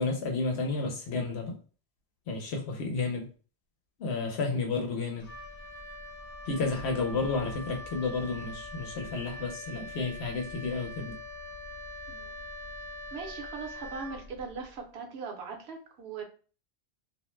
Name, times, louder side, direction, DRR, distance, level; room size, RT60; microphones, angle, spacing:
voice 1, 0.0-1.5 2.3-3.3 4.0-5.3 6.5-11.1, left 3 dB, 75° left, 0.9 m, -31 dB
Wind instrument woodwind instrument, 5.2-14.7, left 1 dB, 40° left, 0.7 m, -43 dB
voice 2, 12.1-12.4 13.1-16.2, right 5 dB, 70° right, 1.0 m, -40 dB
2.5 x 2.1 x 3.1 m
omnidirectional pair, 1.1 m